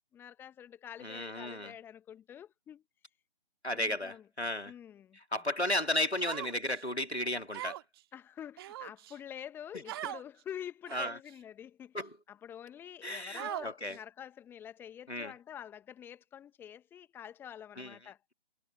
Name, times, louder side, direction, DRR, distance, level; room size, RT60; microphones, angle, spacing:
voice 1, 0.1-2.8 3.7-4.3 4.6-5.2 8.1-12.0 12.3-18.2, left 9 dB, 5° left, 1.5 m, -47 dB
voice 2, 1.0-1.7 3.6-4.7 5.3-7.8 10.9-11.1 11.9-12.1 13.0-14.0 15.1-15.3 17.8-17.9, left 1 dB, 90° left, 2.9 m, -34 dB
Human voice, 6.2-6.8 7.5-8.0 8.6-9.2 9.9-10.2 10.9-11.3 12.0-12.1 13.4-14.0, right 14 dB, 25° right, 2.0 m, -40 dB
figure-of-eight pair, 140°, 32 cm